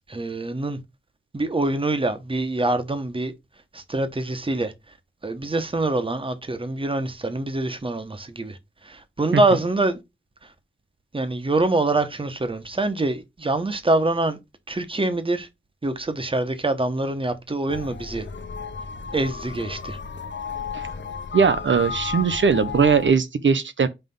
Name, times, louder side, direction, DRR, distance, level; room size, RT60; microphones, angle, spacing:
voice 1, 0.1-0.8 1.3-3.3 3.7-4.7 5.2-8.6 8.8-10.0 11.1-14.4 14.7-15.5 15.8-18.2 19.1-20.0, right 2 dB, 25° right, 1.1 m, -25 dB
sound 1, 17.7-23.1, left 5 dB, 65° left, 0.9 m, -33 dB
voice 2, 21.3-23.9, right 6 dB, 70° right, 0.7 m, -20 dB
5.7 x 3.5 x 5.4 m
wide cardioid pair, 105°, 20 cm